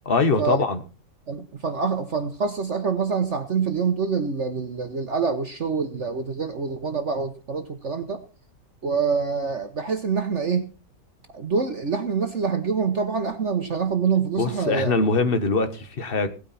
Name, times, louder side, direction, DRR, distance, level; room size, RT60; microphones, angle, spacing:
voice 1, 0.0-0.8 14.4-16.3, left 3 dB, 35° left, 1.4 m, -22 dB
voice 2, 1.3-8.2 8.8-10.7 11.3-14.9, right 5 dB, 45° right, 1.2 m, -26 dB
17.5 x 9.3 x 4.2 m
omnidirectional pair, 1.9 m